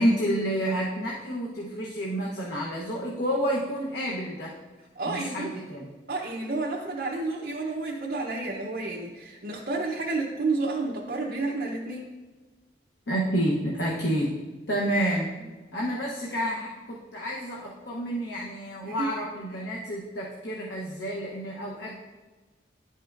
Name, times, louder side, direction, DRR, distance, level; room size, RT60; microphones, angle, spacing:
voice 1, 0.0-4.6 5.1-5.9 13.1-14.3 14.7-15.3 15.7-22.0, equal, 85° left, -4 dB, 1.0 m, -29 dB
voice 2, 4.9-5.6 6.1-12.1 18.8-19.1, right 3 dB, 60° right, -4 dB, 0.8 m, -30 dB
10.5 x 5.5 x 2.5 m, 1.3 s
head